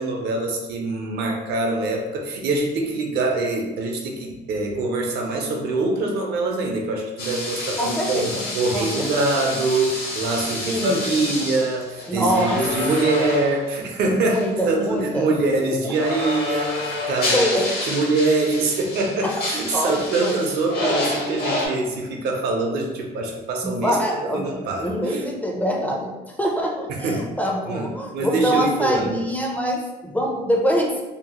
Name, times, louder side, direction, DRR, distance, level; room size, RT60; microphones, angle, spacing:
voice 1, 0.0-17.5 17.8-25.2 26.9-27.3 27.7-29.2, right 3 dB, 75° right, 1 dB, 0.6 m, -24 dB
sound 1, 7.2-13.7 14.3-14.5 15.9-21.7, left 2 dB, 70° left, 0.9 m, -29 dB
voice 2, 7.8-8.4 8.7-9.2 10.6-11.3 12.1-12.6 13.2-13.3 14.2-15.3 15.8-15.9 17.3-17.7 19.2-19.3 19.7-20.4 23.6-24.5 24.8-26.1 26.4-31.0, equal, 10° left, 0 dB, 0.4 m, -24 dB
2.8 x 2.0 x 2.9 m, 1.1 s
cardioid pair, 110°, 17 cm